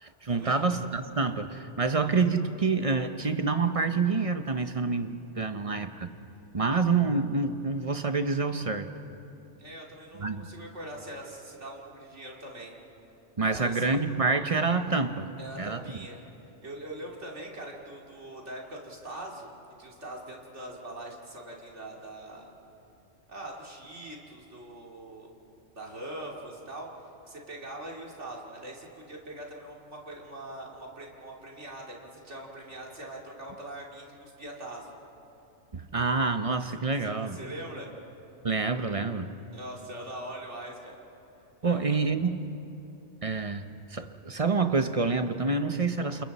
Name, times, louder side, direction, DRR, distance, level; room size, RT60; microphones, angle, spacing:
voice 1, 0.0-6.1 6.5-8.9 10.2-10.5 13.4-15.3 15.6-15.8 35.7-37.4 38.4-39.3 41.6-42.5 43.2-46.2, right 4 dB, 35° right, 8 dB, 0.7 m, -27 dB
voice 2, 9.6-12.7 13.4-13.8 15.4-16.2 16.6-19.5 19.8-22.5 23.3-25.3 25.7-26.9 27.2-34.9 37.0-37.9 39.5-41.0 41.6-42.0, right 1 dB, 70° right, -2 dB, 3.1 m, -42 dB
29.0 x 29.0 x 4.2 m, 2.9 s
omnidirectional pair, 1.2 m